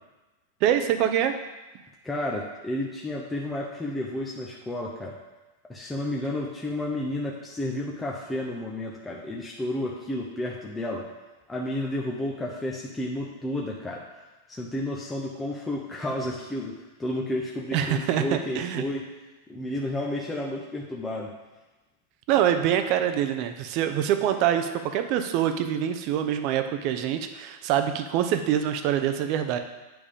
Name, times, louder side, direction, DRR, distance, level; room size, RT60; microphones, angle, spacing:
voice 1, 0.6-1.3 17.7-18.8 22.3-29.6, right 10 dB, 50° right, 8 dB, 0.7 m, -25 dB
voice 2, 2.0-5.2 5.7-11.1 11.5-14.1 14.5-19.1 19.5-21.3, left 1 dB, 10° left, -3 dB, 0.7 m, -31 dB
8.8 x 3.6 x 5.0 m, 1.1 s
hypercardioid pair, 125°, 0 cm